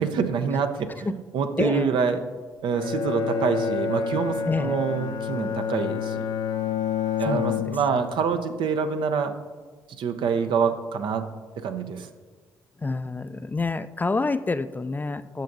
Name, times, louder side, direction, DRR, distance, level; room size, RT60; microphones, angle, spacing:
voice 1, 0.0-2.2 2.6-6.3 7.2-9.3 10.0-11.3 11.6-12.1, right 6 dB, 65° right, 8 dB, 0.6 m, -26 dB
voice 2, 1.6-1.9 4.5-4.8 7.2-7.7 12.8-15.4, left 3 dB, 20° left, 12 dB, 0.3 m, -28 dB
Bowed string instrument, 2.7-8.2, left 7 dB, 60° left, 0.6 m, -28 dB
10.5 x 6.6 x 2.6 m, 1.4 s
hypercardioid pair, 50°, 9 cm